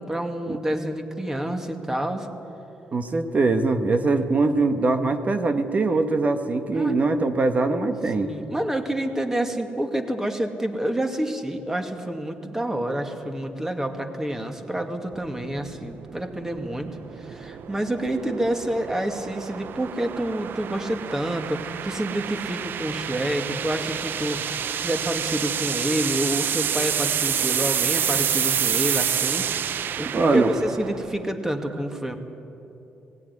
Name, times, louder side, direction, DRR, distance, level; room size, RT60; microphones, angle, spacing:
voice 1, 0.0-2.3 6.8-6.9 8.2-16.9 17.2-29.5 30.0-32.1, right 1 dB, 10° right, 5 dB, 2.1 m, -28 dB
voice 2, 2.9-8.3 30.1-30.5, right 3 dB, 40° right, 7 dB, 1.4 m, -22 dB
sound 1, 15.1-31.4, right 8 dB, 65° right, 0.6 m, -29 dB
18.0 x 16.5 x 9.8 m, 2.9 s
cardioid pair, 85°, 4 cm